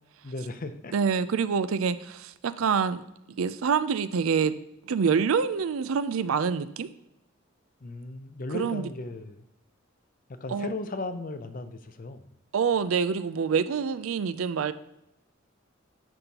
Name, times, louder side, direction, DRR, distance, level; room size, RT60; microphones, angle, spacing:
voice 1, 0.2-0.9 7.8-9.5 10.3-12.3, left 2 dB, 45° left, 0.6 m, -36 dB
voice 2, 0.9-3.0 3.4-4.5 4.9-6.9 8.5-8.8 10.5-10.7 12.5-14.7, right 6 dB, 90° right, 0.4 m, -26 dB
10.5 x 5.3 x 2.9 m
head